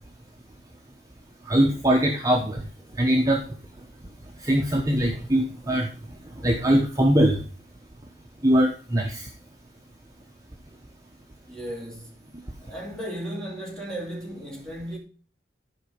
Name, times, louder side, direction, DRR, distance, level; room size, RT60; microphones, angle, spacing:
voice 1, 1.5-2.6 3.0-3.4 4.4-5.9 6.4-7.4 8.4-9.3, right 1 dB, 20° right, 1.0 m, -21 dB
voice 2, 11.5-12.2 12.6-15.0, right 1 dB, 5° left, 2.8 m, -35 dB
11.5 x 5.2 x 5.0 m
head